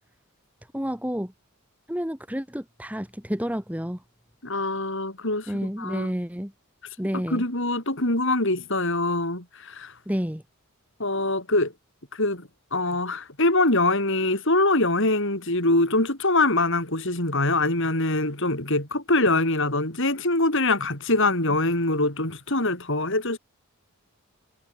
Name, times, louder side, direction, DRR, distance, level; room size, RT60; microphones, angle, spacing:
voice 1, 0.7-1.3 1.9-4.0 5.5-6.5 7.0-7.4 10.1-10.4, equal, 5° right, 3.5 m, -29 dB
voice 2, 4.4-6.1 7.1-9.9 11.0-11.7 12.1-23.4, left 2 dB, 60° left, 6.7 m, -24 dB
head